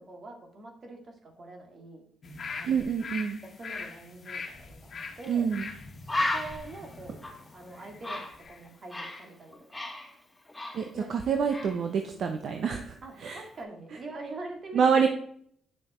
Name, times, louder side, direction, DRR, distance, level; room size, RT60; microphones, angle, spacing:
voice 1, 0.0-2.0 2.5-2.8 3.4-5.5 6.2-7.2 7.5-9.9 10.9-11.4 13.0-15.1, right 2 dB, 45° right, 3 dB, 2.4 m, -44 dB
sound 1, 2.2-8.7 9.0-9.2, left 4 dB, 45° left, 1.5 m, -43 dB
voice 2, 2.6-3.4 5.3-5.7 10.7-10.8 11.1-13.4 14.7-15.1, right 6 dB, 60° right, 5 dB, 0.9 m, -27 dB
Bird, 5.2-5.4 5.7-5.8 6.1-9.3 9.5-11.2 11.5-11.8, left 2 dB, 10° left, 3.7 m, -34 dB
9.4 x 6.4 x 4.4 m, 0.63 s
cardioid pair, 90°, 0 cm